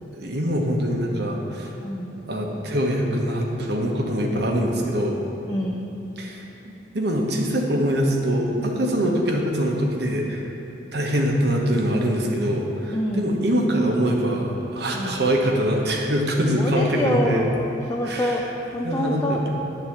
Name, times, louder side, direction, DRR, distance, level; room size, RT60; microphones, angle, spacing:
voice 1, 0.1-1.7 2.3-5.2 6.2-10.5 10.9-17.4 18.1-18.4 18.8-19.6, equal, 55° right, 0 dB, 1.0 m, -23 dB
voice 2, 1.8-2.1 5.5-5.8 9.0-9.2 12.9-13.3 14.9-15.2 16.5-18.4 18.7-19.4, left 1 dB, 15° left, -1 dB, 0.4 m, -26 dB
9.3 x 3.9 x 7.1 m, 3.0 s
head